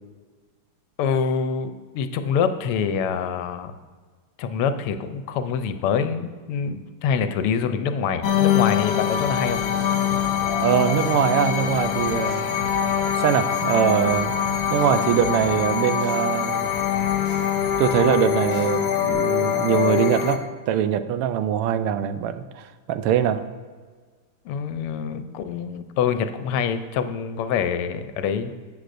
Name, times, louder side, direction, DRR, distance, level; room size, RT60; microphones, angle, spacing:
voice 1, 1.0-3.7 4.4-9.6 24.4-28.5, left 7 dB, 85° left, 9 dB, 1.6 m, -25 dB
sound 1, 8.2-20.4, left 9 dB, 65° left, 0.9 m, -23 dB
sound 2, 9.1-10.7 11.0-13.2 13.5-15.7 16.0-18.2 18.5-19.1, right 1 dB, 50° right, 2.9 m, -39 dB
voice 2, 10.6-12.5 13.1-14.3 14.7-16.7 17.8-23.4, right 9 dB, 85° right, 11 dB, 1.5 m, -22 dB
13.0 x 7.9 x 2.6 m, 1.5 s
omnidirectional pair, 2.4 m